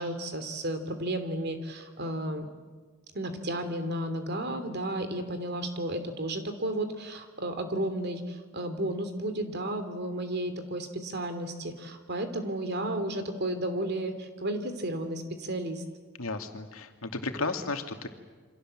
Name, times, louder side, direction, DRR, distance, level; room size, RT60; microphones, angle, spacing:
voice 1, 0.0-2.5 3.1-15.8, right 1 dB, 55° right, 9 dB, 2.8 m, -33 dB
voice 2, 16.2-18.1, left 3 dB, 85° left, 5 dB, 2.4 m, -33 dB
28.0 x 25.0 x 7.7 m, 1.4 s
head